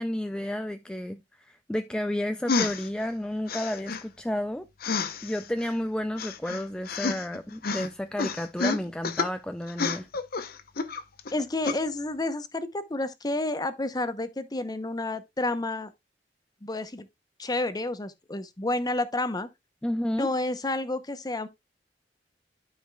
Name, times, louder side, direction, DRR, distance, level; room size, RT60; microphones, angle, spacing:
voice 1, 0.0-4.7 5.2-10.1 19.8-20.3, left 1 dB, 5° left, 0.3 m, -31 dB
sound 1, 2.5-2.9 3.5-4.0 4.8-5.7 6.2-7.4 7.6-7.9 8.2-9.3 9.7-11.3 11.6-11.8, left 4 dB, 55° left, 0.8 m, -29 dB
voice 2, 11.3-15.9 16.6-17.1 17.4-19.5 20.2-21.5, left 2 dB, 20° left, 0.7 m, -30 dB
12.0 x 5.0 x 2.3 m
head